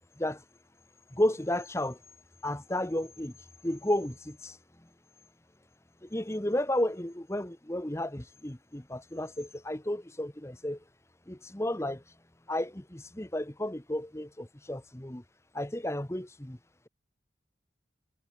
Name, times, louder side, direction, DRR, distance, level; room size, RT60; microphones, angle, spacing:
voice 1, 1.1-2.0 2.4-3.3 3.6-4.6 6.0-10.8 11.3-12.0 12.5-15.2 15.5-16.6, left 1 dB, 15° left, 1.2 m, -32 dB
head